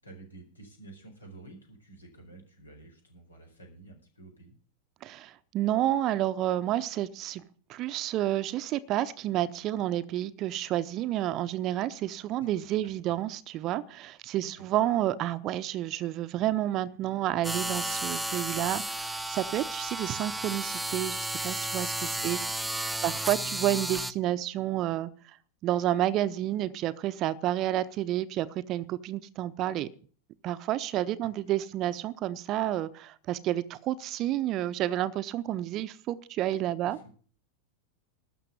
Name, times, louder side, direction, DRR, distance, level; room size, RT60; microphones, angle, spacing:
voice 1, 0.0-4.5 12.4-12.5 13.0-13.1 14.5-14.7 22.1-22.4 23.0-23.5 36.8-37.1, right 2 dB, 80° left, 2 dB, 4.6 m, -51 dB
voice 2, 5.0-7.4 7.7-22.4 23.0-25.1 25.6-29.9 30.4-37.0, right 13 dB, 35° right, 14 dB, 0.8 m, -30 dB
sound 1, 17.4-24.1, right 1 dB, 5° right, 0.6 m, -33 dB
12.5 x 6.8 x 9.8 m, 0.44 s
figure-of-eight pair, 90°, 0 cm